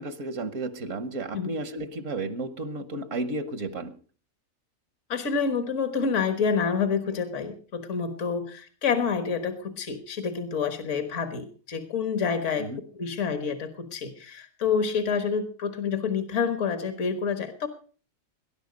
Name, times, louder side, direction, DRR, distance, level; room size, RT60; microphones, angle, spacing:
voice 1, 0.0-3.9 12.6-12.8, right 2 dB, 65° right, 12 dB, 1.4 m, -33 dB
voice 2, 5.1-12.7 13.0-17.7, left 6 dB, 65° left, 9 dB, 1.7 m, -28 dB
19.5 x 11.0 x 5.1 m, 0.41 s
omnidirectional pair, 1.4 m